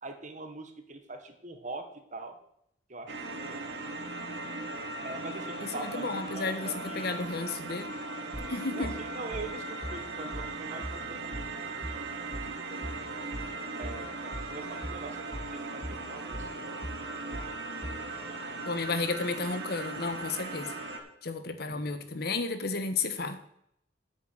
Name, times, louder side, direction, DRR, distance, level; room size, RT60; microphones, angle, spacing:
voice 1, 0.0-1.8 2.1-2.4 2.9-3.6 5.0-7.1 8.7-12.3 12.6-13.1 13.8-15.4 15.7-16.8 17.3-18.9 21.7-22.3, right 3 dB, 45° right, 6 dB, 1.5 m, -44 dB
sound 1, 3.1-21.0, right 2 dB, 75° right, 1.9 m, -38 dB
voice 2, 5.6-6.7 6.9-7.9 8.5-8.9 18.6-20.7 21.2-23.4, left 3 dB, 60° left, 10 dB, 1.1 m, -32 dB
sound 2, 8.3-18.1, equal, 10° right, 1.8 m, -41 dB
8.9 x 6.8 x 7.8 m, 0.73 s
head